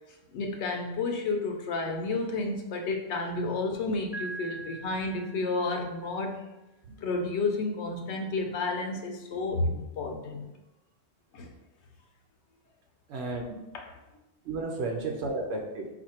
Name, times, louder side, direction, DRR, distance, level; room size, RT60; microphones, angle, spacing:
voice 1, 0.3-6.5 7.0-10.5 11.3-11.5 13.7-13.9, left 3 dB, 85° left, 3 dB, 1.0 m, -31 dB
Piano, 4.1-6.0, right 3 dB, 25° left, 0.9 m, -42 dB
voice 2, 13.1-13.6 14.5-15.9, right 2 dB, 80° right, 1 dB, 0.9 m, -33 dB
4.1 x 2.6 x 4.2 m, 0.99 s
omnidirectional pair, 1.1 m